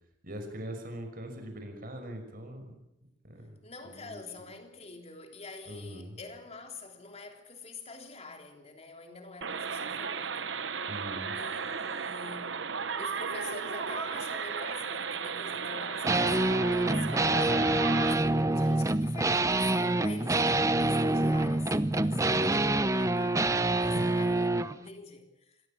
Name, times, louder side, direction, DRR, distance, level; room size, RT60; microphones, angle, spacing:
voice 1, 0.2-2.8 3.2-3.6 3.8-4.2 5.7-6.2 10.9-11.4 18.2-18.5 23.8-24.1, equal, 50° right, 5.7 m, -42 dB
voice 2, 3.6-10.5 11.4-12.6 13.0-25.6, left 3 dB, 35° left, 3.5 m, -46 dB
sound 1, 9.4-18.1, right 5 dB, 75° right, 1.1 m, -35 dB
sound 2, 16.0-24.7, right 2 dB, 15° right, 0.8 m, -26 dB
26.5 x 18.0 x 7.4 m
head